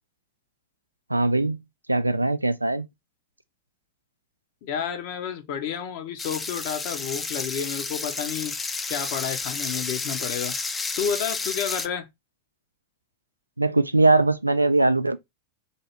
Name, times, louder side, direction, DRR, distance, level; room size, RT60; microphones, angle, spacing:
voice 1, 1.1-1.6 1.9-2.9 13.6-15.2, right 2 dB, 85° right, 0.3 m, -21 dB
voice 2, 4.6-8.5 8.9-10.5 11.0-12.1, left 8 dB, 50° left, 0.7 m, -30 dB
sound 1, 6.2-11.9, left 4 dB, 15° left, 0.4 m, -31 dB
2.8 x 2.7 x 4.4 m
figure-of-eight pair, 90°, 0 cm